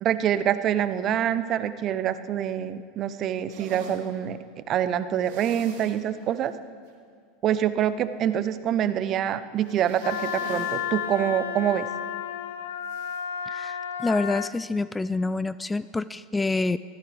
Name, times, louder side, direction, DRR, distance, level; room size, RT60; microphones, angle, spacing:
voice 1, 0.0-4.4 4.7-6.5 7.4-11.9, right 10 dB, 45° right, 13 dB, 0.8 m, -26 dB
sound 1, 3.5-4.0 5.2-6.0 6.4-6.5 6.9-7.0 9.6-10.8 11.1-11.2 12.9-13.2, right 4 dB, 65° right, 3.2 m, -43 dB
Wind instrument woodwind instrument, 10.0-14.6, left 9 dB, 80° left, 0.8 m, -32 dB
voice 2, 13.5-16.8, left 3 dB, 10° left, 16 dB, 0.3 m, -27 dB
23.0 x 15.0 x 3.5 m, 2.1 s
hypercardioid pair, 90°, 0 cm